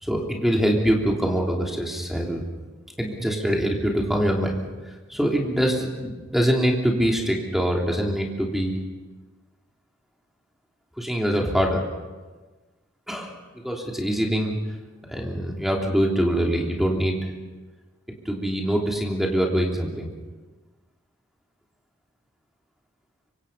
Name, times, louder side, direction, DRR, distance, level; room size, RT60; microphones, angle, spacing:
voice 1, 0.0-2.4 3.0-8.8 11.0-11.8 13.1-13.3 13.6-14.6 15.1-17.3 18.2-20.1, equal, ahead, 0 dB, 3.2 m, -24 dB
25.0 x 24.5 x 5.7 m, 1.3 s
head